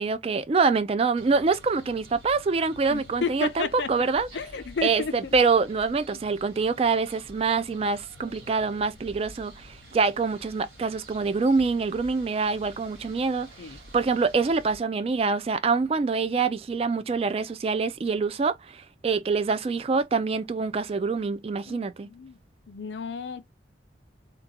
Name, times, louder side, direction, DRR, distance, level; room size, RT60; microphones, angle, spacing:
voice 1, 0.0-4.3 4.8-22.1, right 4 dB, 30° right, 0.3 m, -25 dB
sound 1, 1.2-14.8, equal, 75° right, 2.1 m, -49 dB
voice 2, 2.9-4.1 4.3-5.3 13.6-13.8 21.7-22.4 22.7-23.5, left 5 dB, 70° left, 0.5 m, -33 dB
3.7 x 2.2 x 2.8 m
head